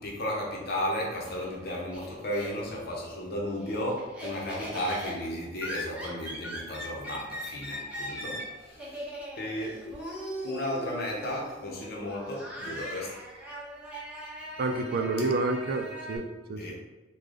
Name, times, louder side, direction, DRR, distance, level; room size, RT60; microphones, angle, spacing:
voice 1, 0.0-9.1 9.4-9.9 10.4-13.2 16.6-16.7, left 1 dB, 55° left, -2 dB, 0.9 m, -34 dB
Laughter, 0.8-2.9 3.3-16.2, equal, 5° right, 0.9 m, -40 dB
voice 2, 14.6-16.7, right 3 dB, 55° right, 5 dB, 0.3 m, -29 dB
3.2 x 2.3 x 3.8 m, 1.2 s
head